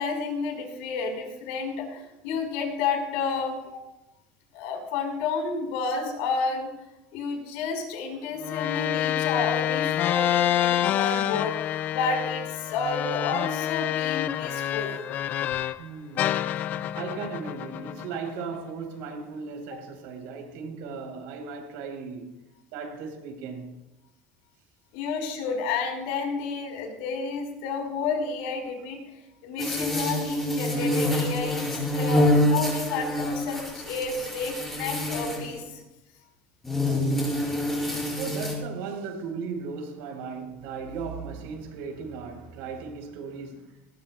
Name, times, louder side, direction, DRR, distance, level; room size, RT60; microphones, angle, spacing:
voice 1, 0.0-3.8 4.5-6.7 7.1-11.6 11.9-15.0 24.9-29.0 29.4-35.8, left 4 dB, 80° left, 5.2 m, -30 dB
sound 1, 8.4-15.8 16.2-18.6, left 11 dB, 35° left, 0.4 m, -27 dB
voice 2, 15.8-16.4 16.7-22.3 22.7-23.7 38.0-43.8, right 5 dB, 70° right, 4.6 m, -37 dB
sound 2, 29.6-35.6 36.6-38.5, left 1 dB, 5° left, 5.7 m, -26 dB
20.0 x 19.5 x 2.5 m
cardioid pair, 170°, 5 cm